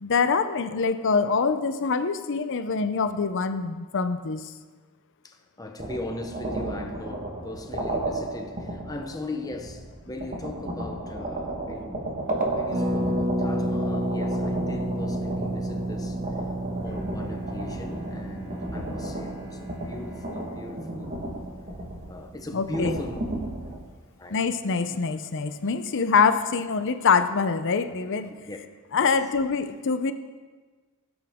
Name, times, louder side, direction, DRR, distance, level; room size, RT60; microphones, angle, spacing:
voice 1, 0.0-4.4 22.5-22.9 24.3-28.3 28.9-30.1, left 5 dB, 55° left, 10 dB, 0.7 m, -24 dB
voice 2, 5.2-12.2 12.5-16.5 16.8-21.2 22.1-23.5 24.2-24.4 28.3-28.6 29.0-29.2, left 2 dB, 15° left, 4 dB, 0.9 m, -38 dB
sound 1, 5.8-23.8, right 2 dB, 35° right, 1.5 m, -34 dB
Harp, 12.7-22.3 22.6-22.7 22.8-23.2, right 1 dB, 70° right, 3.5 m, -31 dB
Bowed string instrument, 16.8-22.4, right 1 dB, 15° right, 2.6 m, -49 dB
17.5 x 8.1 x 3.7 m, 1.4 s
head